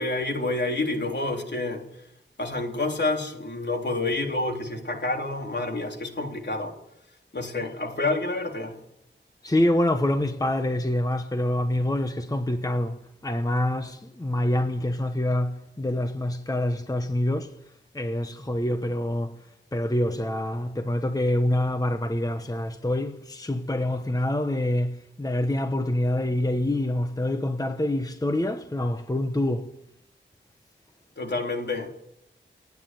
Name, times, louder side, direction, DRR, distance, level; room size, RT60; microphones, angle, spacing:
voice 1, 0.0-1.9 2.4-6.7 7.3-8.8 31.2-31.9, left 2 dB, 60° left, 3.6 m, -28 dB
voice 2, 9.4-13.0 13.2-17.5 17.9-19.3 19.7-29.7, left 1 dB, 20° left, 1.1 m, -26 dB
28.5 x 9.7 x 9.3 m
wide cardioid pair, 90°, 20 cm